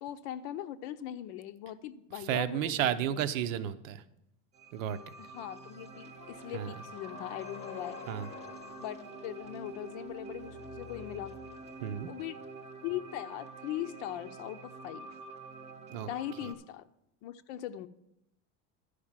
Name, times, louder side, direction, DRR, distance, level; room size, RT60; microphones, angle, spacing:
voice 1, 0.0-3.2 5.2-8.0 8.8-11.3 12.1-12.4 12.8-15.1 16.1-16.9 17.2-17.9, left 12 dB, 65° left, 11 dB, 0.6 m, -40 dB
voice 2, 2.1-4.0 4.7-5.1 6.5-6.7 8.1-8.3 11.8-12.1 15.9-16.1 16.4-16.5, right 10 dB, 90° right, 12 dB, 0.8 m, -32 dB
sound 1, 4.5-16.5, right 3 dB, 20° right, 0.7 m, -47 dB
sound 2, 6.2-12.2, left 6 dB, 20° left, 0.7 m, -50 dB
11.5 x 5.0 x 7.3 m, 0.84 s
supercardioid pair, 155°, 38 cm